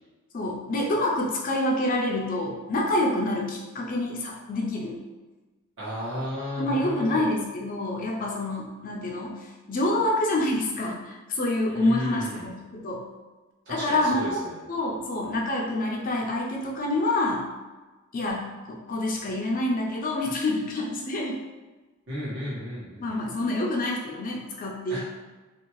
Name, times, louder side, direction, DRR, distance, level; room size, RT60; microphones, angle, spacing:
voice 1, 0.3-5.0 6.6-13.1 13.7-14.4 14.7-17.4 18.1-21.4 23.0-25.0, left 1 dB, 40° left, -1 dB, 0.4 m, -27 dB
voice 2, 5.8-7.3 11.7-12.5 13.7-14.6 22.1-23.1 24.9-25.0, equal, 55° right, -8 dB, 1.1 m, -34 dB
2.6 x 2.2 x 3.0 m, 1.2 s
head